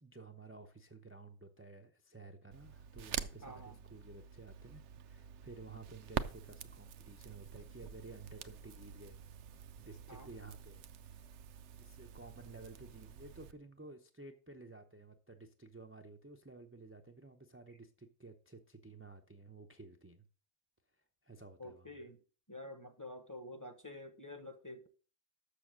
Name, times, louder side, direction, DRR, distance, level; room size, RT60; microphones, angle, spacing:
voice 1, 0.0-9.2 9.8-11.2 11.8-20.3 21.0-22.1, right 3 dB, 15° right, 0.4 m, -54 dB
Crackle, 2.5-13.5, right 9 dB, 70° right, 0.9 m, -46 dB
voice 2, 3.4-3.7 10.1-10.3 21.6-22.2 22.5-24.9, left 1 dB, 20° left, 0.7 m, -48 dB
6.9 x 6.4 x 6.2 m
omnidirectional pair, 1.3 m